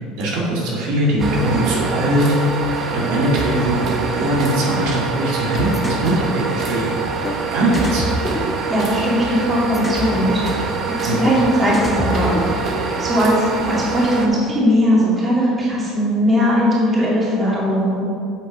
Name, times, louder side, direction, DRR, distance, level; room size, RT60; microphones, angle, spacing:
voice 1, 0.2-2.3 2.5-3.8 4.1-7.0 7.3-8.1 11.0-11.3, right 1 dB, 70° right, -4 dB, 2.2 m, -21 dB
sound 1, 1.2-14.3, right 4 dB, 35° right, 1.0 m, -24 dB
sound 2, 5.7-6.1 7.2-7.4 7.7-9.1 9.7-10.1 11.2-11.4 11.7-12.8, left 1 dB, 10° left, 0.6 m, -26 dB
voice 2, 8.7-10.4 11.0-12.7 13.0-13.3 13.7-18.0, equal, 20° right, -5 dB, 2.2 m, -18 dB
8.1 x 5.8 x 5.4 m, 2.4 s
cardioid pair, 145°, 0 cm